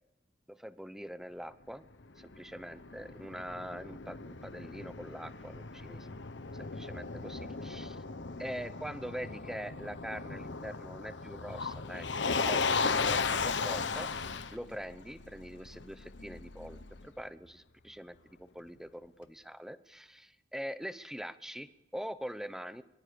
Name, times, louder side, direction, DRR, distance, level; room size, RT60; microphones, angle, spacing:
voice 1, 0.5-1.8 2.2-6.1 6.6-8.0 8.4-12.1 12.4-14.1 14.5-22.8, equal, 5° right, 13 dB, 0.8 m, -43 dB
Motor vehicle (road), 2.0-17.1, left 4 dB, 70° left, 1.2 m, -36 dB
23.5 x 23.0 x 6.8 m, 0.94 s
head